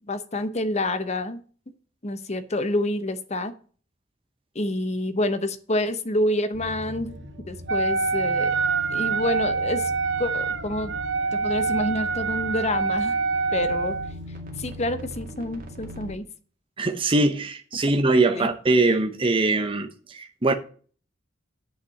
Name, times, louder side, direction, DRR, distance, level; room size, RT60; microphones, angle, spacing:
voice 1, 0.1-1.4 2.0-3.5 4.5-7.2 7.5-8.6 8.9-9.9 10.2-10.9 11.3-13.2 13.5-14.0 14.6-16.3 18.3-18.5, left 1 dB, 35° left, 0.9 m, -27 dB
sound 1, 6.5-16.1, equal, 45° right, 2.1 m, -40 dB
Wind instrument woodwind instrument, 7.7-14.1, right 4 dB, 65° right, 0.9 m, -26 dB
voice 2, 16.8-20.5, right 2 dB, 25° right, 0.8 m, -22 dB
8.4 x 5.6 x 7.5 m
head